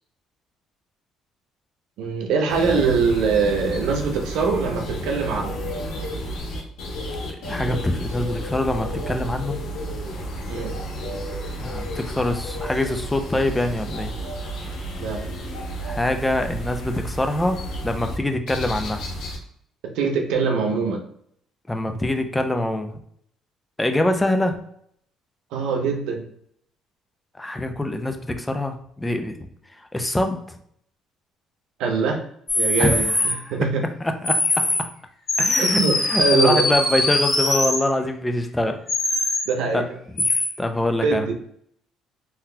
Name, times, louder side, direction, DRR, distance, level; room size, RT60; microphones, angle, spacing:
voice 1, 2.0-5.6 10.5-10.7 15.0-15.2 19.9-21.0 25.5-26.2 31.8-32.2 32.6-33.8 35.6-36.7 39.5-39.8 41.0-41.3, right 5 dB, 85° right, 3 dB, 0.7 m, -23 dB
sound 1, 2.5-18.2 18.5-19.4, right 1 dB, 75° left, 1.1 m, -31 dB
voice 2, 7.4-9.6 11.6-14.1 15.8-17.6 17.8-19.0 21.7-23.0 23.8-24.6 27.4-29.4 29.9-30.4 32.8-33.5 34.0-34.7 35.4-38.8 39.7-39.8 40.6-41.3, left 1 dB, 10° left, 6 dB, 0.4 m, -24 dB
sound 2, 32.5-33.3 34.3-34.8 35.3-37.8 38.9-39.5 40.2-40.5, left 2 dB, 35° left, 1.3 m, -21 dB
3.9 x 2.7 x 2.2 m, 0.68 s
cardioid pair, 120°, 0 cm